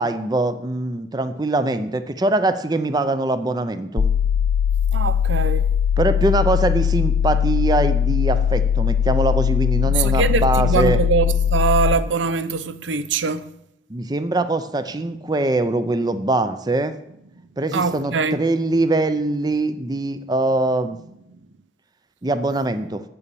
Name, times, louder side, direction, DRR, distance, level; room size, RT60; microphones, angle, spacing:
voice 1, 0.0-4.1 6.0-11.0 13.9-16.9 17.6-21.0 22.2-23.0, right 2 dB, 20° right, 0.5 m, -22 dB
sound 1, 4.0-12.0, left 8 dB, 60° left, 0.4 m, -20 dB
voice 2, 4.9-5.7 9.8-13.5 17.7-18.4, right 4 dB, 90° right, 0.5 m, -22 dB
8.2 x 7.0 x 6.9 m
head